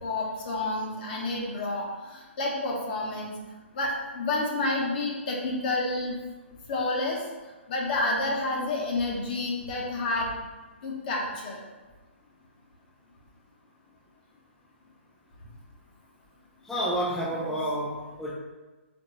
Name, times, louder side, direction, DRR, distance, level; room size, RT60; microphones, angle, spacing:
voice 1, 0.0-3.3 3.7-6.2 6.7-7.2 7.7-10.3 10.8-11.6, left 2 dB, 45° left, -2 dB, 1.3 m, -29 dB
voice 2, 16.6-18.3, equal, 5° left, -6 dB, 0.6 m, -29 dB
4.3 x 3.7 x 3.2 m, 1.2 s
figure-of-eight pair, 135°, 7 cm